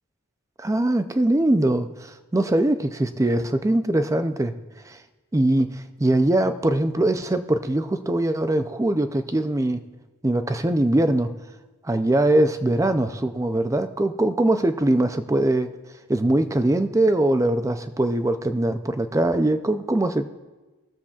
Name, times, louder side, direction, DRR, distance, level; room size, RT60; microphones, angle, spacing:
voice 1, 0.6-4.6 4.9-5.0 5.3-9.8 10.2-11.3 11.8-15.7 16.1-20.3, right 1 dB, 15° right, 9 dB, 0.4 m, -22 dB
21.5 x 7.2 x 2.4 m, 1.2 s
head